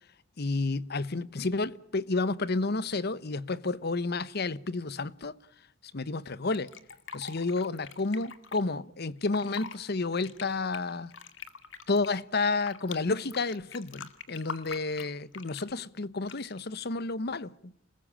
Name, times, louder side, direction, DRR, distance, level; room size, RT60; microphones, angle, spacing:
voice 1, 0.4-5.3 5.9-6.7 7.1-11.1 11.9-17.7, left 3 dB, 55° left, 1.0 m, -31 dB
Fill (with liquid), 6.5-8.6 9.2-9.8 10.1-13.0 13.3-15.7 16.2-16.6, left 6 dB, 70° left, 2.2 m, -43 dB
28.0 x 20.5 x 8.8 m
head